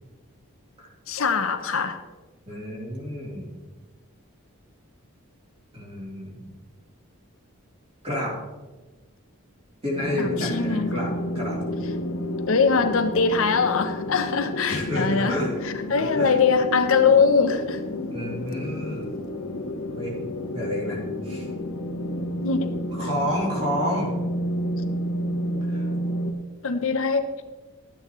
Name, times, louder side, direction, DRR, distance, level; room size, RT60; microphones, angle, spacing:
voice 1, 1.1-2.0 10.2-10.9 12.5-15.4 15.9-17.8 22.4-22.7 26.6-27.4, left 5 dB, 65° left, 8 dB, 0.7 m, -22 dB
voice 2, 2.5-3.4 5.7-6.5 8.0-8.3 9.8-11.6 14.7-15.6 16.0-16.3 18.1-19.1 19.9-20.2 20.5-21.5 22.9-24.1 25.7-25.9, equal, 30° right, -5 dB, 3.2 m, -30 dB
sound 1, 9.9-26.3, equal, 85° left, 1.2 m, -30 dB
13.0 x 8.8 x 3.1 m, 1.2 s
head